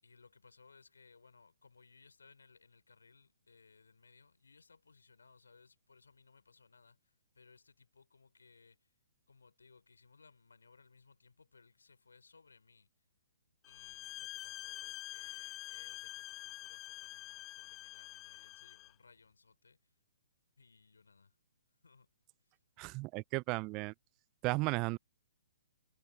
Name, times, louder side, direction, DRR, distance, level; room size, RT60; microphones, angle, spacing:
voice 1, 0.0-8.9 9.3-12.9 13.7-19.9 20.6-21.4 21.8-22.1 22.4-22.6, left 4 dB, 80° left, 5.6 m, -64 dB
sound 1, 13.6-18.9, left 15 dB, 25° left, 0.6 m, -47 dB
voice 2, 22.8-23.9 24.4-25.0, right 25 dB, 30° right, 0.4 m, -34 dB
hypercardioid pair, 130°, 0 cm